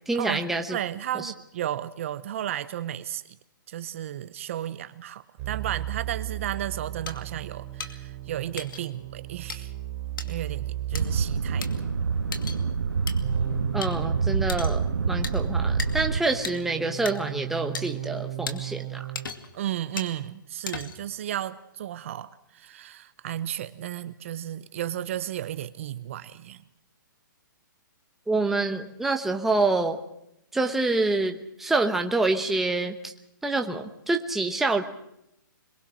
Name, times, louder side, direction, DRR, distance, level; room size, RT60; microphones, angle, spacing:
voice 1, 0.1-0.8 1.1-1.3 13.7-19.1 28.3-30.0 30.5-33.1 33.4-34.8, right 2 dB, 5° right, 4 dB, 1.0 m, -27 dB
voice 2, 0.7-3.4 3.7-9.7 10.2-11.7 12.0-12.1 19.5-26.6, right 11 dB, 40° right, 14 dB, 0.7 m, -34 dB
sound 1, 5.4-11.3 13.2-19.3, right 14 dB, 20° right, 6.1 m, -36 dB
sound 2, 7.1-7.2 7.8-7.9 8.6-8.8 9.5-9.6 10.2-10.3 10.9-11.0 11.6-11.7 12.3-12.6 13.1-13.2 13.8-13.9 14.5-14.8 15.2-15.4 15.8-15.9 16.4-16.6 17.1-17.2 17.7-17.8 18.5-18.6 19.1-19.5 20.0-20.1 20.7-21.1, left 5 dB, 75° left, 2.5 m, -35 dB
sound 3, 10.9-16.2, right 5 dB, 90° right, 1.8 m, -26 dB
24.0 x 22.0 x 6.3 m, 0.81 s
hypercardioid pair, 160°, 11 cm